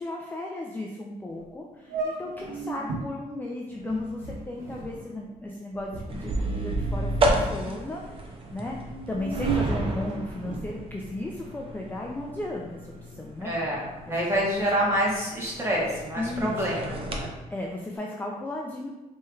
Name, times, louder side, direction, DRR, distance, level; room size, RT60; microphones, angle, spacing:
voice 1, 0.0-8.8 9.1-13.5 14.1-14.3 16.2-16.5 17.5-18.9, left 1 dB, 10° left, -1 dB, 0.4 m, -35 dB
sound 1, 1.3-1.4 1.9-3.0 3.7-7.2 7.5-8.1 8.7-10.7, right 4 dB, 90° right, 1.1 m, -35 dB
sound 2, 6.1-17.3, right 1 dB, 35° right, 0.6 m, -32 dB
voice 2, 13.4-13.8 14.1-17.3, equal, 15° right, -4 dB, 1.2 m, -27 dB
4.4 x 3.2 x 2.3 m, 1.1 s
cardioid pair, 105°, 15 cm